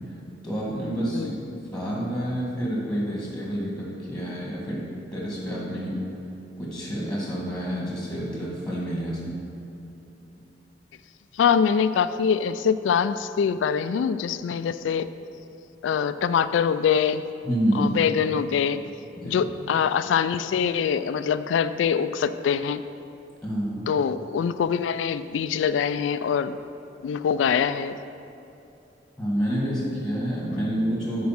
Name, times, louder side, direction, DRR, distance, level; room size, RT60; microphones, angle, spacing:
voice 1, 0.4-1.3 1.7-4.9 5.1-6.0 6.6-9.3 17.4-18.0 19.2-19.5 23.4-23.9 29.2-31.3, equal, 5° left, -5 dB, 2.0 m, -28 dB
voice 2, 11.4-15.1 15.8-17.2 17.7-18.8 19.2-22.8 23.9-26.6 27.0-28.0, left 7 dB, 90° left, 13 dB, 0.3 m, -24 dB
9.4 x 4.8 x 5.9 m, 2.8 s
head